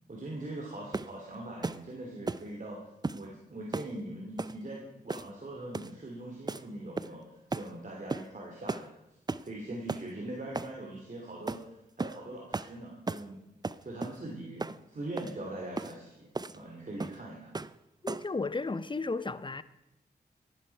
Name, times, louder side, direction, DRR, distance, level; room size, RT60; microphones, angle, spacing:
voice 1, 0.1-2.8 3.1-7.2 7.5-8.9 9.4-11.6 12.0-13.4 13.8-17.5, right 1 dB, 50° right, 2.7 m, -41 dB
sound 1, 0.9-1.2 1.6-1.8 2.3-2.5 3.0-3.2 3.7-3.9 4.4-4.6 5.1-5.4 5.7-6.0 6.5-6.6 7.0-7.2 7.5-7.7 8.1-8.3 8.7-8.9 9.3-9.5 9.9-10.1 10.5-10.7 11.5-11.6 12.0-12.2 12.5-12.7 13.1-13.3 13.6-14.2 14.6-14.8 15.2-15.3 15.8-15.9 16.3-16.6 17.0-17.2 17.5-17.8 18.1-18.3, right 3 dB, 25° right, 0.5 m, -35 dB
voice 2, 18.0-19.6, left 3 dB, 30° left, 0.7 m, -34 dB
14.0 x 11.5 x 4.6 m
cardioid pair, 55°, 17 cm